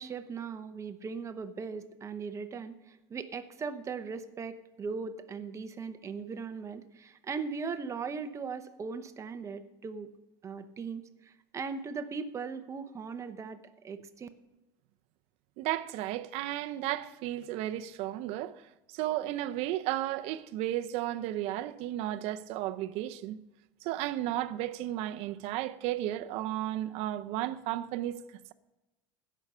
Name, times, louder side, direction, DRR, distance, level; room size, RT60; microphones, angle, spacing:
voice 1, 0.0-10.1 10.4-13.6 13.8-14.3, right 5 dB, 25° right, 0.9 m, -39 dB
voice 2, 15.6-18.6 18.9-23.4 23.8-28.2, right 14 dB, 60° right, 0.7 m, -33 dB
16.5 x 6.3 x 5.5 m
supercardioid pair, 130°, 12 cm